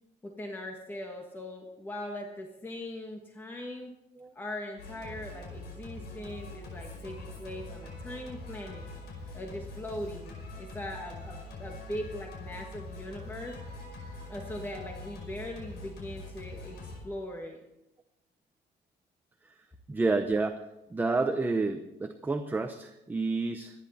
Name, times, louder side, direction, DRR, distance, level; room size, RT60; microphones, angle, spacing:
voice 1, 0.2-3.9 4.3-8.9 9.3-13.6 14.3-17.6, left 1 dB, 10° left, 1 dB, 1.4 m, -40 dB
Singing, 4.8-17.0, left 2 dB, 70° left, 5.3 m, -43 dB
voice 2, 19.9-20.6 20.9-23.7, right 3 dB, 10° right, 6 dB, 0.7 m, -29 dB
24.5 x 10.5 x 4.2 m, 0.91 s
cardioid pair, 175°, 18 cm